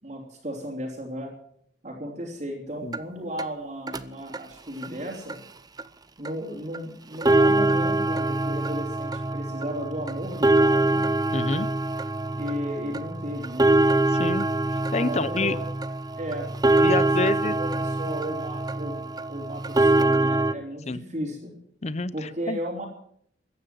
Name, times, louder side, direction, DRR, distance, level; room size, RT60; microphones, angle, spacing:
voice 1, 0.0-1.3 1.8-5.4 6.2-11.1 12.4-13.7 14.8-15.6 16.2-19.0 19.3-21.5 22.1-22.9, equal, 40° right, -1 dB, 3.3 m, -35 dB
sound 1, 2.9-3.0 3.4-3.5 3.9-4.0 4.3-4.4 4.8-4.9 5.3-5.4 5.8-5.9 6.3-6.4 6.7-6.8 7.1-20.5, right 2 dB, 20° right, 0.7 m, -24 dB
voice 2, 11.3-11.7 14.1-14.5 14.9-15.6 16.8-17.6 20.9-21.0 21.8-22.6, left 3 dB, 35° left, 17 dB, 0.7 m, -27 dB
14.5 x 9.9 x 9.1 m, 0.67 s
head